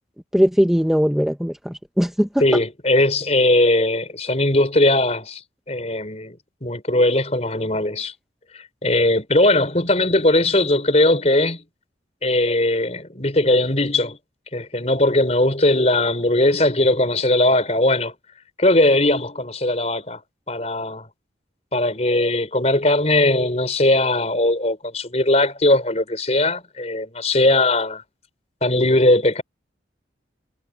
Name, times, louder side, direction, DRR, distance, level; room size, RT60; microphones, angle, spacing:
voice 1, 0.3-2.4, equal, ahead, 0.6 m, -19 dB
voice 2, 2.4-5.4 5.7-6.4 6.6-8.1 8.8-11.6 12.2-14.2 14.5-18.1 18.6-20.2 20.5-21.1 21.7-28.0 28.6-29.4, left 1 dB, 40° left, 4.9 m, -19 dB
head